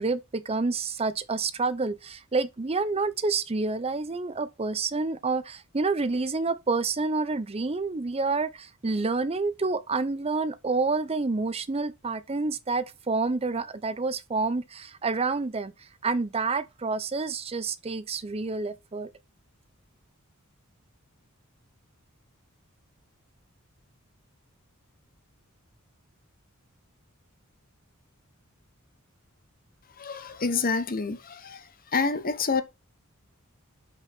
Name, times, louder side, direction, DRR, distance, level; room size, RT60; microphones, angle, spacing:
voice 1, 0.0-19.1, right 3 dB, 30° right, 0.6 m, -28 dB
voice 2, 30.0-31.6 31.9-32.6, left 4 dB, 40° left, 1.0 m, -27 dB
6.3 x 5.8 x 5.8 m
head